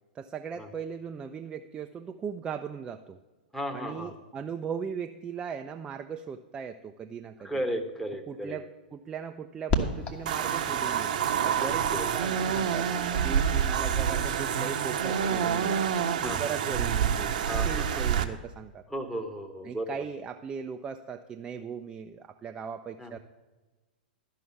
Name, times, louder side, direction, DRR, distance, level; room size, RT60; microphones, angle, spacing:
voice 1, 0.1-3.2 3.7-7.5 8.3-12.9 13.2-15.8 16.2-18.8 19.6-23.2, right 6 dB, 20° right, 6 dB, 0.4 m, -38 dB
voice 2, 3.5-4.1 7.4-8.6 11.5-12.2 16.2-16.5 17.4-18.0 18.9-19.9 23.0-23.2, equal, 5° left, 4 dB, 1.1 m, -35 dB
sound 1, 9.7-15.4, left 3 dB, 25° left, 1.3 m, -37 dB
sound 2, 10.3-18.2, right 8 dB, 55° right, 0.7 m, -27 dB
12.5 x 5.6 x 7.0 m, 1.2 s
figure-of-eight pair, 105°, 5 cm